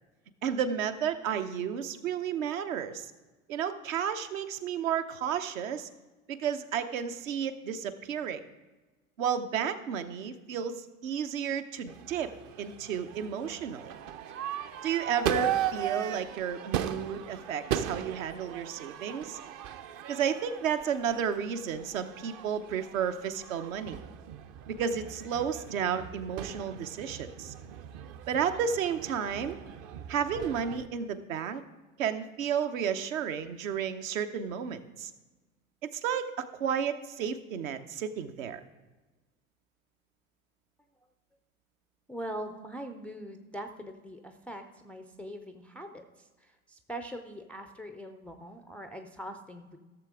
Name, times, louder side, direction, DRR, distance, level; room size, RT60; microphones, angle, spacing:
voice 1, 0.4-3.1 3.5-5.9 6.3-8.4 9.2-12.3 12.6-13.9 14.8-19.4 20.1-24.0 24.7-27.5 28.3-29.6 30.1-31.6 32.0-35.1 35.8-38.6, right 7 dB, 65° right, 8 dB, 0.8 m, -32 dB
Crowd / Fireworks, 11.9-30.9, right 10 dB, 40° right, 0.6 m, -38 dB
voice 2, 42.1-49.8, equal, 5° left, 5 dB, 0.3 m, -42 dB
15.5 x 6.9 x 3.6 m, 1.2 s
figure-of-eight pair, 75°, 42 cm